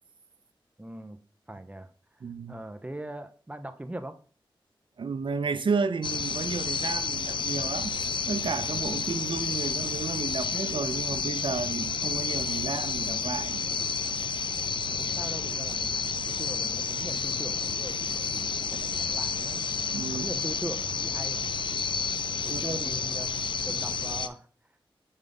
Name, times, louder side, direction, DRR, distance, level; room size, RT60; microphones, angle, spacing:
voice 1, 0.8-1.2 1.5-1.9 2.5-4.2 15.0-19.6 20.1-21.5 22.4-24.5, right 1 dB, 15° right, 0.7 m, -40 dB
voice 2, 2.2-2.6 5.0-7.9 8.3-13.6 19.9-20.3 22.5-22.8, right 5 dB, 70° right, 0.6 m, -32 dB
sound 1, 6.0-24.3, left 5 dB, 65° left, 0.4 m, -30 dB
5.4 x 3.7 x 5.1 m
wide cardioid pair, 90°, 9 cm